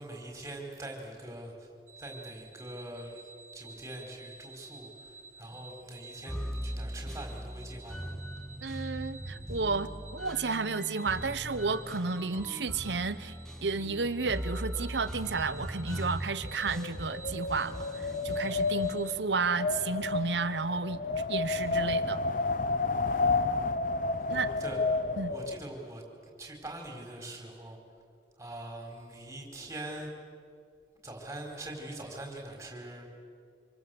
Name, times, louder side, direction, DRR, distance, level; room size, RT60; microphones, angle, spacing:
voice 1, 0.0-1.7 2.0-8.1 24.2-24.8 25.3-27.8 28.4-30.1 31.0-33.2, right 1 dB, 15° right, 1 dB, 4.6 m, -43 dB
sound 1, 1.9-19.1, right 4 dB, 45° right, 1.4 m, -52 dB
sound 2, 6.3-19.0, equal, 5° left, 1.4 m, -40 dB
voice 2, 8.6-13.4 13.6-21.0 21.3-22.2 24.3-24.5 25.2-25.3, right 4 dB, 80° right, 14 dB, 1.0 m, -32 dB
Wind, 16.5-25.7, left 3 dB, 50° left, 0.7 m, -31 dB
26.5 x 25.0 x 8.0 m, 2.2 s
head